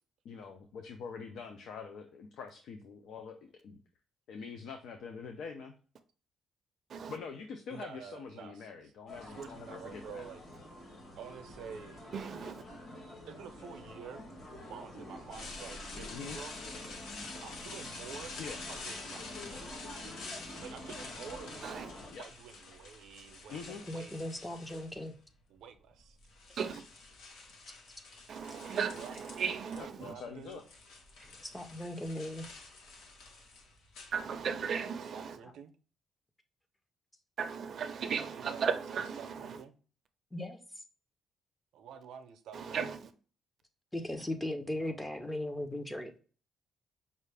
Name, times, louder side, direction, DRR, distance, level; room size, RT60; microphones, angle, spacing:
voice 1, 0.2-3.4 3.6-3.8 4.3-5.7 7.1-10.2 16.0-16.4 18.4-18.6 22.1-22.3 23.5-23.8 29.8-30.6, left 5 dB, 70° left, 0.5 m, -44 dB
voice 2, 7.7-8.9 9.2-10.4 11.2-12.0 13.3-14.2 14.7-16.5 17.4-18.4 18.7-19.4 20.6-24.5 25.5-26.2 28.9-29.1 29.7-30.6 34.1-34.6 35.1-35.7 38.3-39.7 41.7-42.8, right 7 dB, 85° right, 0.6 m, -49 dB
sound 1, 9.1-22.1, left 1 dB, 45° left, 1.5 m, -48 dB
voice 3, 12.1-12.6 21.6-21.9 26.6-26.8 28.3-30.1 34.1-35.4 37.4-39.6 42.5-43.0, right 6 dB, 40° right, 0.5 m, -36 dB
sound 2, 15.3-25.2 26.0-29.8 30.1-34.7, left 3 dB, 85° left, 1.0 m, -48 dB
voice 4, 23.7-25.1 31.2-32.5 40.3-40.6 43.9-46.1, left 1 dB, 5° left, 0.5 m, -38 dB
5.4 x 2.4 x 3.3 m
cardioid pair, 180°, 0 cm